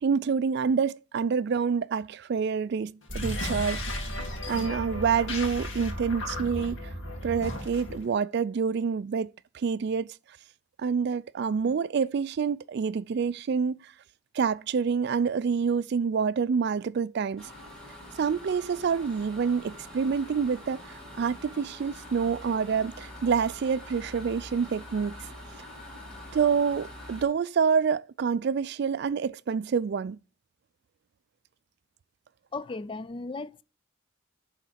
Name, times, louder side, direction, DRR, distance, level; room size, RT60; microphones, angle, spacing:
voice 1, 0.0-4.0 4.5-6.8 7.2-10.1 10.8-13.9 14.3-17.5 18.2-20.8 21.2-25.1 26.3-30.2, right 6 dB, 55° right, 0.3 m, -27 dB
sound 1, 3.0-8.1, left 1 dB, 65° left, 2.2 m, -34 dB
sound 2, 17.4-27.2, left 1 dB, 5° left, 3.7 m, -45 dB
voice 2, 32.5-33.6, left 3 dB, 25° left, 0.3 m, -36 dB
10.5 x 3.9 x 6.4 m
head